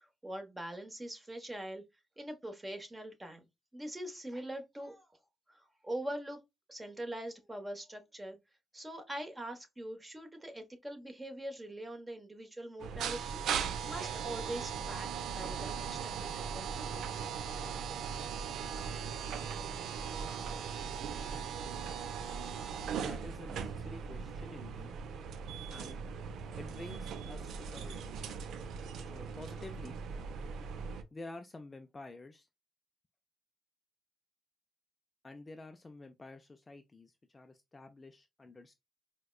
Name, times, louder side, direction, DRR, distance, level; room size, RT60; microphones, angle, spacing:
voice 1, 0.0-1.8 2.2-3.4 3.7-5.1 5.5-6.4 6.7-8.4 8.7-15.1 15.3-17.2, right 1 dB, 15° right, 1.1 m, -43 dB
sound 1, 12.8-31.0, right 6 dB, 75° right, 0.5 m, -39 dB
voice 2, 23.0-24.9 25.7-26.0 26.6-28.3 29.1-30.0 31.1-32.5 35.2-38.7, left 2 dB, 25° left, 0.4 m, -49 dB
4.5 x 2.2 x 2.3 m
cardioid pair, 90°, 0 cm